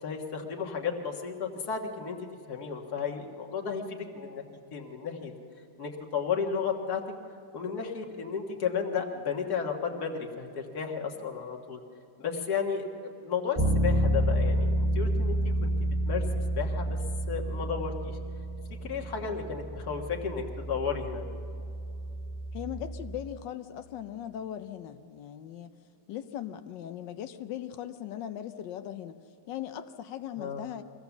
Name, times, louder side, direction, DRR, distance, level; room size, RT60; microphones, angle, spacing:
voice 1, 0.0-2.2 2.5-5.3 5.8-7.0 7.5-11.8 12.2-15.7 16.1-16.2 16.5-17.0 17.3-18.2 18.8-21.2 30.4-30.7, left 6 dB, 60° left, 1 dB, 2.0 m, -33 dB
Bass guitar, 13.6-23.3, right 1 dB, 25° right, 1.0 m, -30 dB
voice 2, 22.5-25.7 26.1-29.1 29.5-30.8, left 10 dB, 85° left, 9 dB, 1.4 m, -39 dB
23.5 x 16.0 x 7.1 m, 2.8 s
omnidirectional pair, 1.9 m